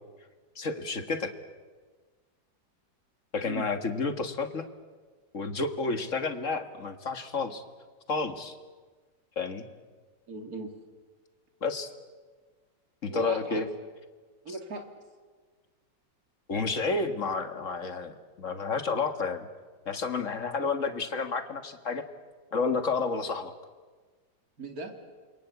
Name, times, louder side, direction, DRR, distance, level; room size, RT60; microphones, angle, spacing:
voice 1, 0.6-1.3 3.3-4.7 5.3-7.6 8.1-8.6 9.4-9.7 11.6-11.9 13.0-13.7 14.5-14.6 16.5-19.5 19.9-22.0 22.5-23.5, left 4 dB, 45° left, 9 dB, 2.0 m, -30 dB
voice 2, 10.3-10.7 13.1-13.7 14.4-14.9 24.6-24.9, right 3 dB, 50° right, 5 dB, 3.1 m, -38 dB
28.0 x 23.0 x 8.4 m, 1.4 s
omnidirectional pair, 2.0 m